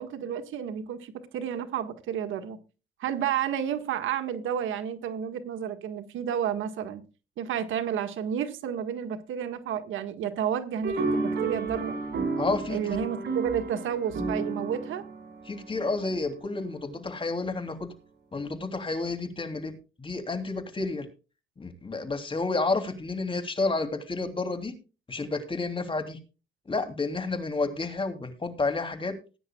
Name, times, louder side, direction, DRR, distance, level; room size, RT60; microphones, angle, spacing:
voice 1, 0.0-2.6 3.0-7.0 7.4-12.0 12.7-15.0, right 9 dB, 80° right, 1.6 m, -31 dB
sound 1, 10.8-16.4, right 3 dB, 60° right, 5.6 m, -32 dB
voice 2, 12.4-12.8 15.5-17.9 18.3-21.1 21.6-24.8 25.1-26.2 26.7-29.2, left 3 dB, 25° left, 3.0 m, -30 dB
19.5 x 10.0 x 2.3 m
cardioid pair, 90°, 20 cm